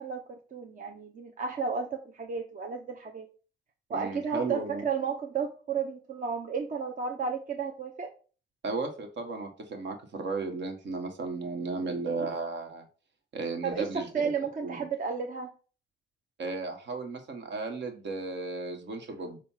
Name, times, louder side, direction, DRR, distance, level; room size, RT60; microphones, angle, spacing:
voice 1, 0.0-3.3 3.9-8.1 13.6-15.5, right 5 dB, 40° right, 3 dB, 0.9 m, -33 dB
voice 2, 3.9-4.8 8.6-12.8 13.3-14.1 14.6-14.8 16.4-19.4, right 3 dB, 65° right, 5 dB, 1.5 m, -34 dB
6.9 x 2.5 x 5.6 m, 0.37 s
cardioid pair, 90°, 20 cm